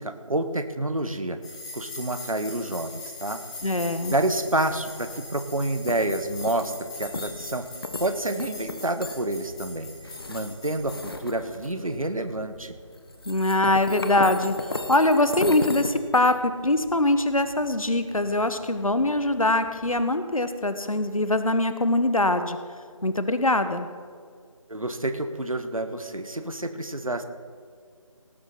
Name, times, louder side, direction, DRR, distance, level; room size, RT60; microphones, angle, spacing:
voice 1, 0.0-1.4 1.7-3.4 4.1-7.6 8.0-12.8 24.7-27.2, right 1 dB, 80° right, 9 dB, 1.4 m, -28 dB
sound 1, 1.4-11.1, left 3 dB, 10° left, 1.8 m, -42 dB
voice 2, 3.6-4.1 13.3-22.6 23.0-23.9, left 2 dB, 80° left, 10 dB, 1.3 m, -23 dB
sound 2, 3.6-20.0, left 2 dB, 45° left, 1.1 m, -38 dB
18.0 x 7.8 x 5.8 m, 2.1 s
figure-of-eight pair, 165°, 18 cm